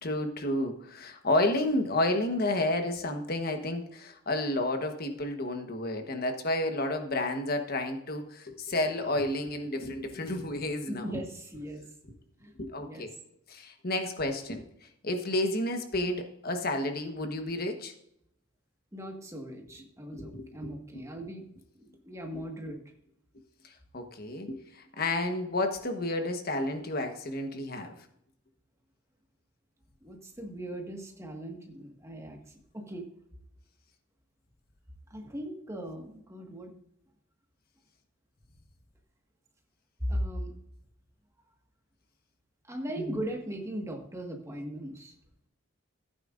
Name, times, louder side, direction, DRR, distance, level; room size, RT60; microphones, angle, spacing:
voice 1, 0.0-11.2 12.6-13.1 13.5-14.6 15.0-17.9 20.1-20.5 23.9-24.6 25.0-27.9 43.0-43.2, left 1 dB, 50° left, 5 dB, 1.2 m, -31 dB
voice 2, 10.9-11.9 12.4-12.5 12.8-13.1 18.9-21.4 21.8-22.8 30.0-32.4 32.7-33.1 35.1-36.7 40.0-40.5 42.7-45.1, right 1 dB, 15° right, 2 dB, 1.6 m, -38 dB
15.0 x 9.2 x 2.5 m, 0.76 s
head